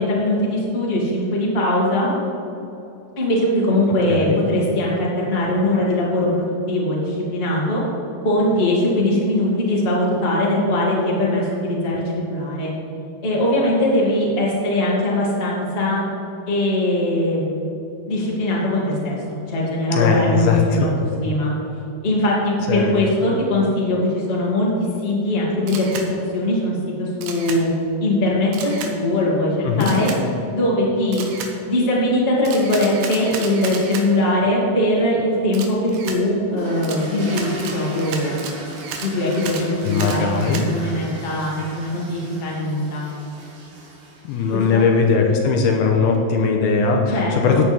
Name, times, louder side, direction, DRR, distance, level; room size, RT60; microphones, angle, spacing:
voice 1, 0.0-2.1 3.2-7.8 8.2-12.7 13.2-16.0 16.5-17.6 18.1-20.9 21.2-21.5 22.0-24.7 25.0-27.7 28.0-30.1 30.5-31.2 31.6-38.5 39.0-43.0 44.5-44.8 47.1-47.6, left 1 dB, 20° left, -5 dB, 1.7 m, -21 dB
voice 2, 4.1-4.4 19.9-20.9 22.7-22.9 29.7-29.9 39.9-40.7 44.2-47.7, left 5 dB, 80° left, 2 dB, 2.6 m, -19 dB
Camera, 25.7-26.1 27.2-27.6 28.5-28.9 29.8-30.2 31.1-31.5 32.5-34.1 35.5-36.2 36.8-40.7, right 6 dB, 80° right, 3.1 m, -33 dB
sound 1, 36.5-45.0, right 1 dB, 65° right, 3.9 m, -38 dB
14.5 x 9.1 x 3.5 m, 2.9 s
omnidirectional pair, 4.7 m